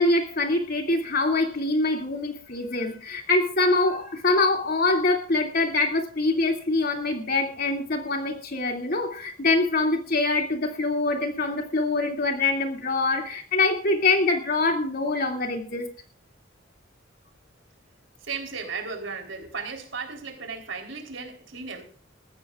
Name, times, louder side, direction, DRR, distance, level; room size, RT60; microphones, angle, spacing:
voice 1, 0.0-15.9, left 3 dB, 50° left, 3 dB, 2.7 m, -24 dB
voice 2, 18.2-21.8, right 5 dB, 75° right, 4 dB, 3.8 m, -35 dB
21.0 x 14.5 x 2.5 m, 0.41 s
head